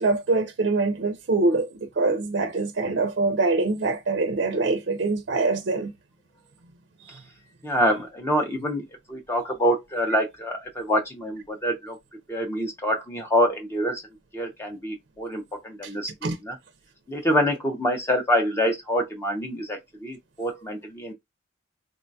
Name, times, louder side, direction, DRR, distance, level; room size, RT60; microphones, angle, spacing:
voice 1, 0.0-5.9 7.0-7.2 15.8-15.9 16.2-16.4, right 3 dB, 55° right, 0.4 m, -24 dB
voice 2, 7.6-12.0 12.3-14.0 14.3-16.6 17.1-21.1, equal, 10° left, 0.4 m, -26 dB
3.8 x 2.2 x 2.6 m
head